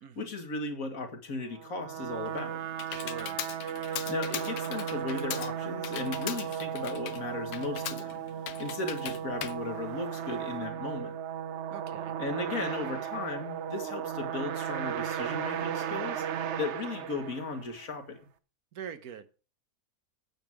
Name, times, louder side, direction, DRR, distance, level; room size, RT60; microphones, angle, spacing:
voice 1, 0.2-2.6 4.1-8.2 8.6-11.2 12.2-18.2, left 3 dB, 70° left, 2.2 m, -36 dB
sound 1, 1.5-17.8, right 9 dB, 55° right, 0.9 m, -36 dB
Computer keyboard, 2.0-10.6, left 10 dB, 85° left, 1.2 m, -40 dB
voice 2, 2.9-3.4 11.7-12.2 18.7-19.3, right 8 dB, 80° right, 1.5 m, -43 dB
9.1 x 7.1 x 6.1 m
omnidirectional pair, 1.6 m